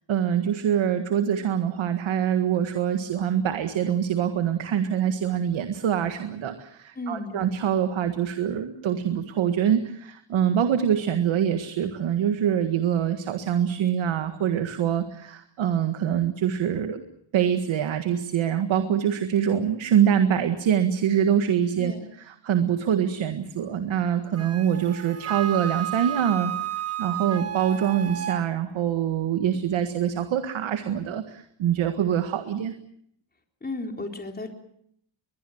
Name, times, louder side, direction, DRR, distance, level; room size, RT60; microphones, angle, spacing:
voice 1, 0.1-17.0 17.3-26.6 27.0-32.7, right 9 dB, 85° right, 8 dB, 1.9 m, -24 dB
voice 2, 7.0-7.4 21.8-22.1 33.6-34.5, left 2 dB, 20° left, 3 dB, 3.9 m, -34 dB
Wind instrument woodwind instrument, 24.4-28.4, right 11 dB, 30° right, 1.9 m, -32 dB
22.0 x 22.0 x 8.0 m, 0.70 s
cardioid pair, 95°, 46 cm